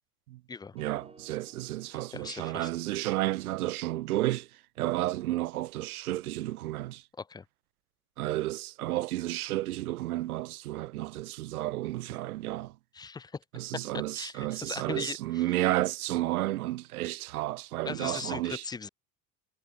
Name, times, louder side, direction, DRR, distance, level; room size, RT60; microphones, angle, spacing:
voice 1, 0.7-4.5 4.8-7.0 8.2-12.7 13.5-18.6, right 16 dB, 70° right, 1.4 m, -32 dB
sound 1, 0.8-3.1, right 3 dB, 15° right, 5.2 m, -57 dB
voice 2, 2.1-2.7 7.2-7.4 12.9-13.3 13.7-15.4 17.8-18.9, left 5 dB, 10° left, 0.4 m, -39 dB
figure-of-eight pair, 60°, 45 cm